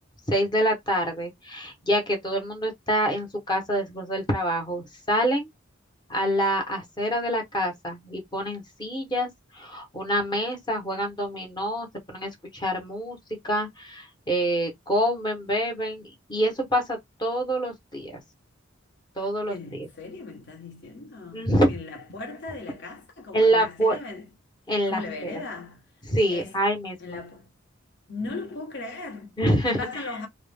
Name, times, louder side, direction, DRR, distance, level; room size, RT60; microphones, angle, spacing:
voice 1, 0.3-5.5 6.1-9.3 9.5-13.2 13.4-18.2 19.2-19.9 21.3-21.8 23.3-24.0 24.7-25.3 26.1-27.2 29.4-30.0, right 1 dB, 20° left, 0.8 m, -26 dB
voice 2, 19.5-24.3 24.9-25.9 26.3-26.6 27.0-27.5 28.1-29.4 29.7-30.3, left 3 dB, 60° left, 0.9 m, -37 dB
2.3 x 2.0 x 3.2 m
head